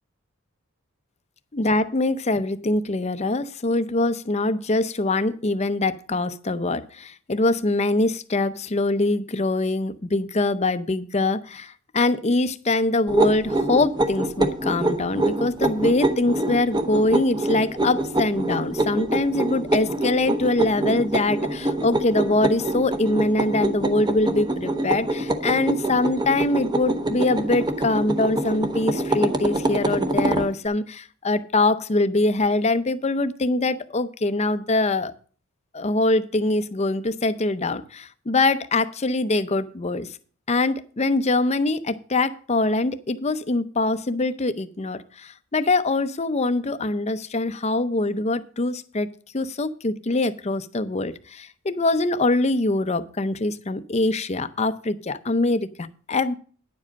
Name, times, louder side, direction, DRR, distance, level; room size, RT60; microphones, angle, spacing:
voice 1, 1.5-35.1 35.7-40.1 40.5-49.1 49.3-56.3, left 2 dB, 30° left, 12 dB, 0.6 m, -23 dB
sound 1, 13.1-30.5, right 1 dB, 20° right, 0.9 m, -25 dB
10.5 x 7.5 x 5.2 m, 0.41 s
head